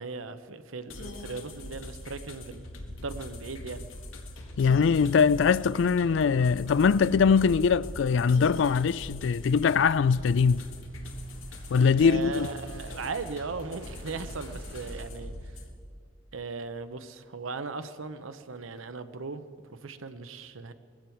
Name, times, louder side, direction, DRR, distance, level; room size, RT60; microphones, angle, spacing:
voice 1, 0.0-3.9 12.0-15.5 16.3-20.7, right 4 dB, 90° right, 0.8 m, -38 dB
sound 1, 0.9-15.7, left 1 dB, 85° left, 1.8 m, -42 dB
voice 2, 4.6-10.6 11.7-12.5, left 6 dB, 65° left, 0.3 m, -22 dB
sound 2, 9.7-15.0, right 1 dB, 65° right, 2.0 m, -54 dB
20.0 x 15.0 x 4.5 m
head